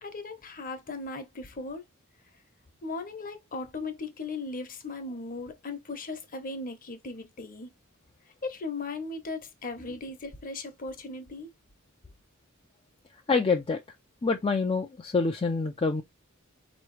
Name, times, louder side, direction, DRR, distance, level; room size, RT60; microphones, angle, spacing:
voice 1, 0.0-1.8 2.8-7.7 8.4-11.5, left 3 dB, 40° left, 1.0 m, -37 dB
voice 2, 13.3-13.8 14.2-16.0, left 4 dB, 25° left, 0.4 m, -26 dB
4.6 x 3.1 x 3.1 m
head